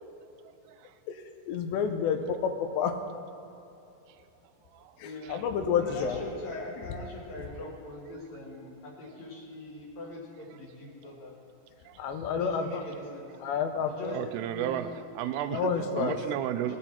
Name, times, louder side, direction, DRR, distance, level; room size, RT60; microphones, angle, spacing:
voice 1, 0.5-0.9 4.7-5.0 5.2-5.4 11.9-12.0 14.1-14.9 15.2-16.8, right 12 dB, 85° right, 11 dB, 2.6 m, -33 dB
voice 2, 1.1-3.0 5.0-6.2 7.4-7.5 12.0-12.8 13.4-14.3 15.5-16.2, left 6 dB, 85° left, 6 dB, 3.1 m, -30 dB
voice 3, 5.0-5.4 5.8-11.3 12.3-13.3 13.8-14.2 14.5-15.0 15.7-16.4 16.7-16.8, left 1 dB, 55° left, -3 dB, 2.4 m, -41 dB
20.0 x 8.7 x 4.3 m, 2.9 s
omnidirectional pair, 4.9 m